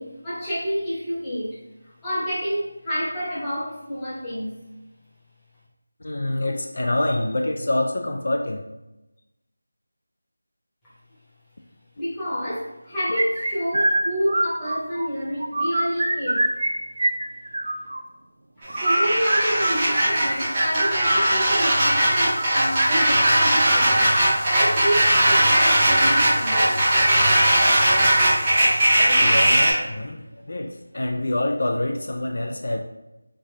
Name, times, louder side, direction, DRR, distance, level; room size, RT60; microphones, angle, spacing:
voice 1, 0.0-1.6 2.0-4.5 11.9-16.5 18.6-26.7, equal, 5° left, -13 dB, 0.9 m, -28 dB
voice 2, 6.0-8.6 29.2-32.8, left 1 dB, 55° left, 2 dB, 0.4 m, -26 dB
sound 1, 13.2-15.1 15.4-16.7 17.0-18.0 18.7-24.3 25.1-25.4 26.6-27.5 27.7-27.8 28.3-28.4 29.0-29.3, right 1 dB, 55° right, 0.4 m, -25 dB
sound 2, 18.6-29.7, right 1 dB, 20° right, 0.7 m, -19 dB
3.2 x 2.6 x 3.2 m, 0.97 s
figure-of-eight pair, 175°, 0 cm